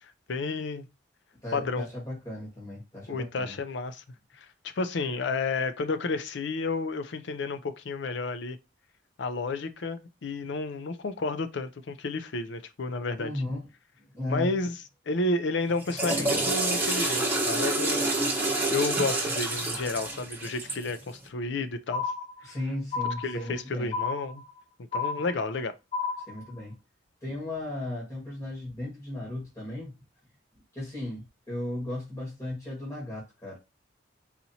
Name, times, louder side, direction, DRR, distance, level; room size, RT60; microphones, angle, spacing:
voice 1, 0.3-0.9 1.5-1.9 3.1-4.0 4.4-8.6 9.2-13.3 14.3-14.7 15.1-18.3 18.7-22.1 22.5-22.6 23.2-24.4 24.9-25.8, left 3 dB, 65° left, 0.5 m, -31 dB
voice 2, 1.4-3.6 13.2-13.7 14.1-14.6 22.4-23.9 26.3-26.8 27.2-29.9 30.7-33.6, left 1 dB, 20° left, 1.6 m, -36 dB
Water / Toilet flush, 15.7-20.9, right 2 dB, 10° right, 1.3 m, -28 dB
sound 1, 21.9-22.6 22.9-23.6 23.9-24.6 24.9-25.6 25.9-26.6, left 5 dB, 35° left, 0.9 m, -32 dB
4.1 x 2.9 x 2.7 m
head